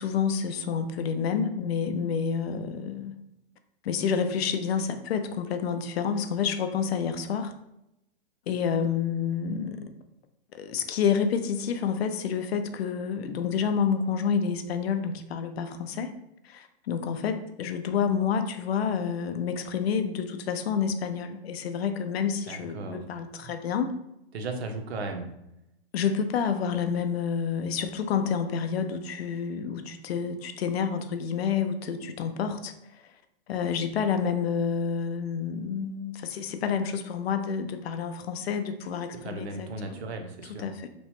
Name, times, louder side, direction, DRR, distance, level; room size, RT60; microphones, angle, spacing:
voice 1, 0.0-3.2 3.8-7.5 8.5-9.9 10.5-16.1 16.4-23.9 25.9-32.7 33.5-40.0 40.6-40.9, left 6 dB, 80° left, 8 dB, 0.5 m, -29 dB
voice 2, 22.5-23.1 23.4-23.6 24.3-25.3 39.1-40.7, right 3 dB, 90° right, 5 dB, 0.6 m, -36 dB
3.0 x 2.1 x 2.9 m, 0.85 s
hypercardioid pair, 170°, 31 cm